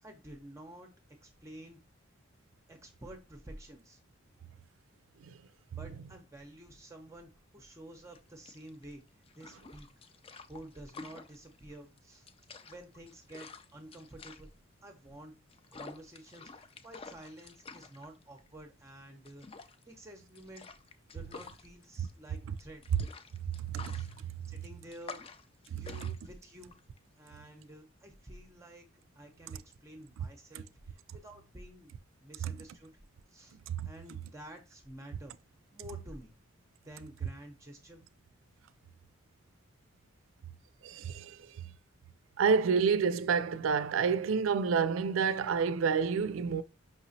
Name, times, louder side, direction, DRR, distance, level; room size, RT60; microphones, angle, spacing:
voice 1, 0.0-0.9 1.2-1.8 2.7-4.0 5.7-10.0 10.5-12.3 12.6-14.5 14.8-15.3 15.7-20.6 21.1-22.9 23.9-24.1 24.5-25.2 25.8-26.8 27.2-28.9 29.2-31.9 32.2-32.9 33.3-33.6 33.8-35.3 35.7-36.3 36.8-38.0, right 1 dB, 15° right, 0.6 m, -50 dB
sound 1, 8.1-27.8, left 4 dB, 30° left, 0.4 m, -51 dB
voice 2, 23.7-24.0 25.7-25.8 33.7-33.9 40.8-41.4 42.4-46.6, right 6 dB, 80° right, 0.4 m, -29 dB
5.5 x 3.0 x 2.7 m
head